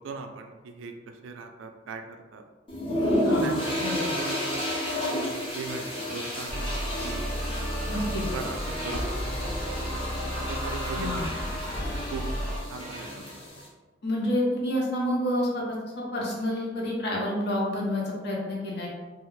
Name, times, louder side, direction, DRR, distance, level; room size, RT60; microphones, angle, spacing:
voice 1, 0.0-2.4 3.3-7.3 7.9-9.4 9.7-10.0 10.4-11.4 11.7-12.3 12.7-13.5, right 4 dB, 85° right, 5 dB, 0.3 m, -40 dB
sound 1, 2.7-13.7, equal, 30° left, 0.6 m, -31 dB
voice 2, 3.2-4.0 7.9-8.3 10.9-11.2 14.0-15.6 16.1-18.9, left 1 dB, 60° left, -3 dB, 0.7 m, -28 dB
sound 2, 6.5-12.6, equal, ahead, 1.0 m, -32 dB
2.3 x 2.0 x 3.0 m, 1.3 s
head